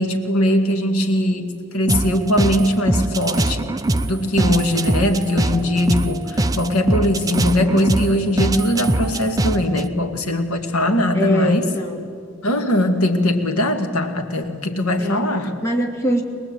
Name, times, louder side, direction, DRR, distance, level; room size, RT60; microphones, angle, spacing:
voice 1, 0.0-3.7 4.1-11.7 12.4-15.5, left 1 dB, 90° left, 5 dB, 2.1 m, -20 dB
sound 1, 1.9-9.9, right 2 dB, 15° right, 0.6 m, -23 dB
voice 2, 11.1-12.1 15.0-15.3 15.6-16.2, equal, 15° left, 0 dB, 2.8 m, -23 dB
22.5 x 21.5 x 9.0 m, 2.3 s
head